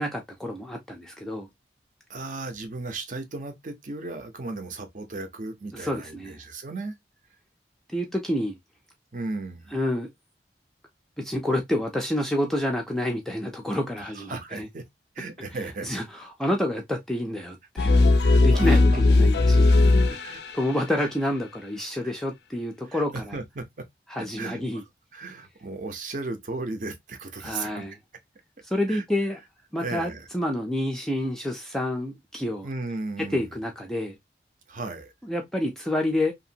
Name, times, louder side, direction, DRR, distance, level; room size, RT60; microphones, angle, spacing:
voice 1, 0.0-1.5 5.7-6.4 7.9-8.6 9.7-10.1 11.2-14.7 15.8-18.1 18.4-19.7 20.1-20.2 20.5-23.3 24.1-24.8 27.4-27.9 28.6-29.4 29.7-32.7 33.3-34.2 35.3-36.3, left 1 dB, 5° left, 0.4 m, -28 dB
voice 2, 2.1-6.9 9.1-9.8 14.0-14.8 15.2-15.9 18.2-19.0 19.7-19.8 20.1-20.5 21.0-21.1 22.0-22.1 22.8-23.7 24.4-24.8 25.1-27.8 28.9-29.0 29.8-30.3 32.6-33.5 34.7-35.1, right 3 dB, 45° right, 0.6 m, -36 dB
sound 1, 17.8-20.6, left 2 dB, 70° left, 0.4 m, -18 dB
2.8 x 2.5 x 2.6 m
head